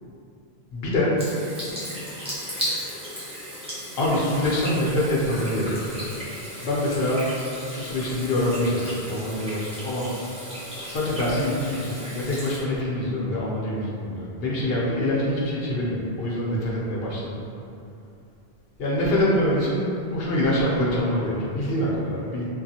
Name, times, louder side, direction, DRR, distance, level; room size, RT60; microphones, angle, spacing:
voice 1, 0.7-1.1 4.0-6.0 6.6-7.3 7.7-10.1 10.9-17.4 18.8-22.5, left 1 dB, 70° left, -5 dB, 0.8 m, -25 dB
Water tap faucet / Sink (filling or washing), 1.2-12.6, equal, 5° right, 0.7 m, -35 dB
2.9 x 2.3 x 2.7 m, 2.7 s
omnidirectional pair, 1.1 m